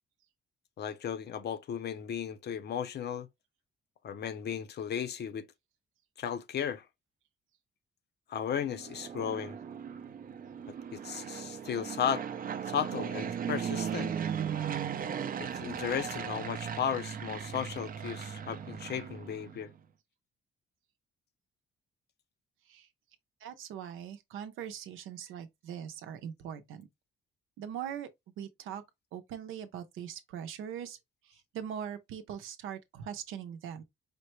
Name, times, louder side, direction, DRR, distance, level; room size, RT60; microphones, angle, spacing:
voice 1, 0.8-3.3 4.0-5.5 6.2-6.8 8.3-9.6 10.9-12.3 12.7-14.1 15.4-19.7, left 8 dB, 55° left, 0.6 m, -35 dB
Fixed-wing aircraft airplane, 8.6-19.7, right 8 dB, 45° right, 0.5 m, -37 dB
voice 2, 23.4-26.9 27.6-28.1 28.4-28.8 29.1-31.0 31.5-33.8, right 9 dB, 85° right, 0.7 m, -41 dB
5.1 x 2.1 x 3.0 m
cardioid pair, 90°, 20 cm